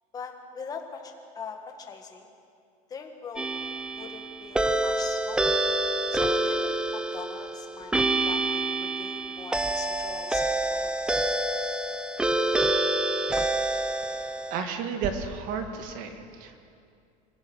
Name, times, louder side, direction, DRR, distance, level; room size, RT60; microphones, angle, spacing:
voice 1, 0.1-2.3 2.9-3.5 3.9-5.5 6.1-11.0, left 5 dB, 20° left, 4 dB, 1.9 m, -41 dB
sound 1, 3.4-14.6, right 2 dB, 5° right, 0.6 m, -27 dB
voice 2, 14.5-16.6, right 6 dB, 50° right, 6 dB, 2.0 m, -32 dB
25.5 x 16.5 x 6.3 m, 2.4 s
cardioid pair, 165°, 18 cm